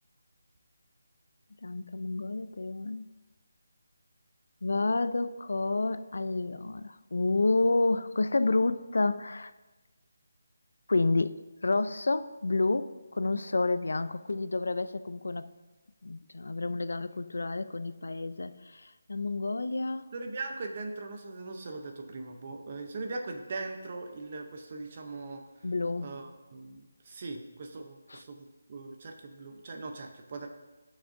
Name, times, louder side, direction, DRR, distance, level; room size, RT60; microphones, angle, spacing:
voice 1, 1.6-3.1 4.6-9.5 10.9-15.5 16.0-20.1 25.6-26.1 28.1-28.2, left 3 dB, 70° left, 13 dB, 0.4 m, -29 dB
voice 2, 20.1-25.4 26.0-30.5, right 3 dB, 25° right, 4 dB, 0.7 m, -40 dB
14.5 x 6.2 x 2.6 m, 1.2 s
hypercardioid pair, 180°, 0 cm